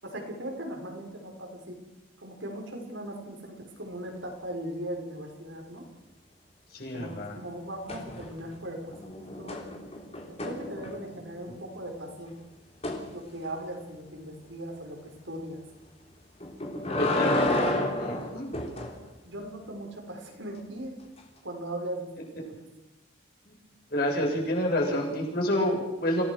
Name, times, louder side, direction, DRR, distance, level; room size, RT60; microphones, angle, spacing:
voice 1, 0.0-1.8 2.2-5.9 6.9-9.6 10.4-12.4 13.1-15.6 17.1-17.2 19.3-21.0 21.4-22.1 22.4-22.5, right 1 dB, 75° right, 2 dB, 5.5 m, -39 dB
voice 2, 6.7-7.4 16.9-17.7 18.0-18.5 23.5-23.6 23.9-26.2, left 1 dB, 50° left, -2 dB, 7.6 m, -28 dB
sound 1, 7.9-8.5 8.9-11.2 12.8-13.0 16.4-18.9 21.2-21.3, left 1 dB, 30° left, 3.6 m, -30 dB
26.5 x 18.0 x 6.5 m, 1.0 s
head